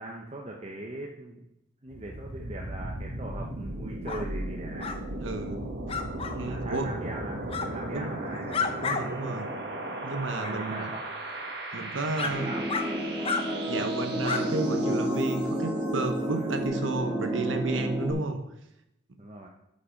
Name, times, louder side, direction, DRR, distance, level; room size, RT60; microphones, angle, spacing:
voice 1, 0.0-1.4 1.8-4.9 6.4-7.4 7.7-8.7 10.3-11.0 12.1-12.7 16.0-16.5 19.2-19.5, right 1 dB, 30° right, -1 dB, 0.8 m, -40 dB
sound 1, 1.9-15.7, right 1 dB, 55° right, 1.5 m, -37 dB
sound 2, 4.1-4.3 4.8-5.0 5.9-6.4 7.5-7.7 8.2-9.0 9.4-9.5 10.4-10.5 11.3-11.4 12.2-12.3 12.7-12.9 13.2-13.4 14.2-14.4, left 5 dB, 30° left, 0.6 m, -31 dB
voice 2, 5.2-5.7 6.3-7.0 7.9-8.1 8.8-9.5 10.0-10.9 11.7-12.5 13.7-18.4, right 2 dB, 75° right, 7 dB, 1.0 m, -32 dB
sound 3, 12.3-18.1, equal, 15° right, 2.0 m, -30 dB
8.5 x 5.6 x 5.2 m, 0.82 s
head